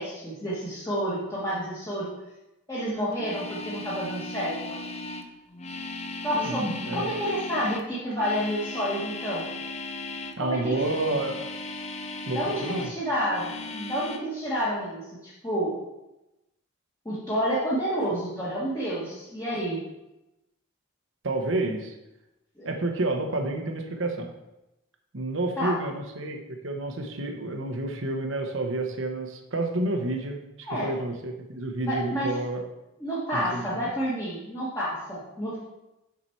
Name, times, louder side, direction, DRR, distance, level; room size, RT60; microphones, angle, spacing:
voice 1, 0.0-2.1 2.7-4.8 6.2-9.4 10.4-10.8 12.3-15.8 17.0-19.8 22.6-22.7 25.6-25.8 30.6-30.9 31.8-32.3 33.0-35.6, equal, 15° left, -9 dB, 1.6 m, -29 dB
sound 1, 3.1-10.4 10.7-13.0 13.3-14.2, left 2 dB, 30° left, 0.6 m, -37 dB
voice 2, 6.3-7.1 10.4-11.4 12.3-12.9 21.2-21.9 22.6-24.3 25.1-30.4 30.7-32.6 33.3-33.9, right 2 dB, 65° right, 4 dB, 1.0 m, -30 dB
7.1 x 6.0 x 4.6 m, 0.96 s
head